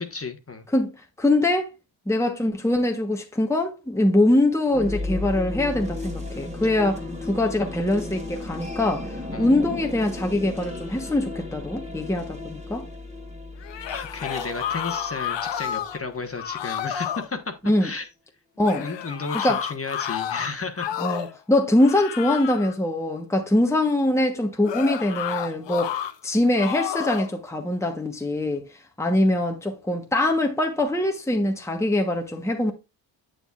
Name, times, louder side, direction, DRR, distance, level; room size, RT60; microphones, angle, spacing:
voice 1, 0.1-0.7 9.3-9.5 13.9-18.1 18.8-21.3, left 4 dB, 30° left, 1.3 m, -33 dB
voice 2, 1.2-1.7 2.1-12.8 17.6-17.9 18.6-18.9 19.4-19.6 21.0-28.7 29.0-32.7, left 1 dB, 5° left, 1.1 m, -23 dB
sound 1, 4.7-16.5, left 2 dB, 15° right, 2.1 m, -35 dB
sound 2, 13.6-16.0 16.4-17.3 18.6-21.4 21.8-22.8 24.6-26.1 26.6-27.3, left 10 dB, 70° left, 0.8 m, -31 dB
7.8 x 7.0 x 2.5 m
cardioid pair, 60°, 46 cm